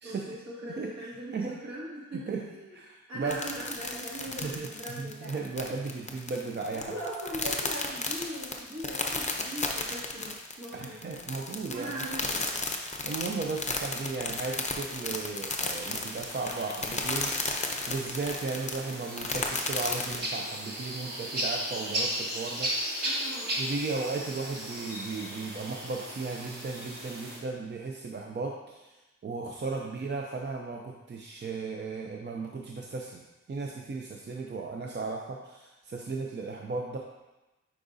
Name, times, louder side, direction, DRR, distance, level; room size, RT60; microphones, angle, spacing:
voice 1, 0.0-1.4 1.6-2.2 2.5-2.7 3.1-5.4 5.7-5.8 6.7-11.0 11.7-12.6 23.0-23.6, right 1 dB, 60° right, -6 dB, 2.1 m, -40 dB
voice 2, 0.7-1.6 2.1-2.5 2.7-3.4 4.3-4.7 5.0-6.9 10.7-11.9 13.0-17.5 17.9-23.1 23.6-33.2 33.5-37.0, right 4 dB, 35° right, 0 dB, 0.5 m, -35 dB
sound 1, 3.3-20.2, left 3 dB, 20° left, 0.6 m, -34 dB
sound 2, 15.7-27.4, equal, 75° right, 1.5 m, -36 dB
8.5 x 4.8 x 2.7 m, 1.0 s
wide cardioid pair, 150°, 31 cm